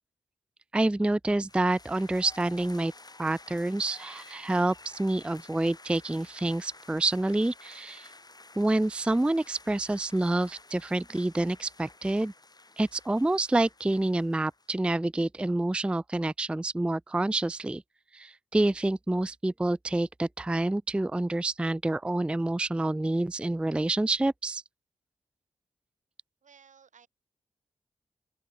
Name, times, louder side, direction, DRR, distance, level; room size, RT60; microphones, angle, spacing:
voice 1, 0.7-2.9 3.2-8.1 8.6-12.3 12.8-17.8 18.1-24.6, right 2 dB, 10° right, 0.3 m, -28 dB
sound 1, 1.5-14.7, left 2 dB, 30° left, 4.5 m, -52 dB
voice 2, 26.4-27.1, right 7 dB, 80° right, 4.3 m, -56 dB
open air
cardioid pair, 50°, 13 cm